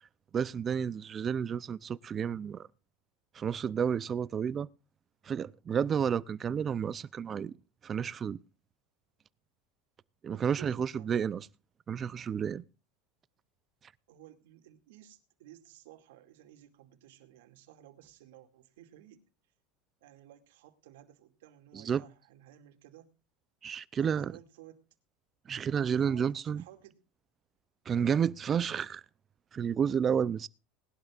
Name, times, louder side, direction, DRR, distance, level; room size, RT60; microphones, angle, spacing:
voice 1, 0.3-2.7 3.3-4.7 5.2-7.5 7.8-8.4 10.2-11.5 11.9-12.6 21.7-22.0 23.6-24.3 25.5-26.6 27.9-29.0 29.5-30.5, right 7 dB, 25° right, 0.6 m, -31 dB
voice 2, 10.3-11.3 14.1-19.2 20.0-23.1 24.0-24.8 26.0-26.3 26.5-27.0, right 12 dB, 85° right, 2.4 m, -55 dB
20.0 x 12.0 x 2.5 m
supercardioid pair, 135°, 0 cm